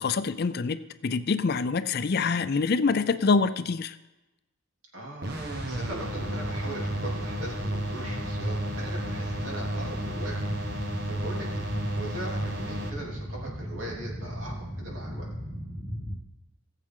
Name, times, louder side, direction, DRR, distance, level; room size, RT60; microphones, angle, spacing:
voice 1, 0.0-3.9, left 4 dB, 45° left, 12 dB, 0.4 m, -25 dB
voice 2, 4.9-10.4 10.8-11.7 11.9-15.3, right 1 dB, 65° right, -3 dB, 3.1 m, -40 dB
sound 1, 5.2-12.9, right 1 dB, 50° right, 1.3 m, -33 dB
sound 2, 5.4-16.2, equal, 10° right, 2.1 m, -36 dB
19.5 x 7.5 x 3.7 m, 1.0 s
head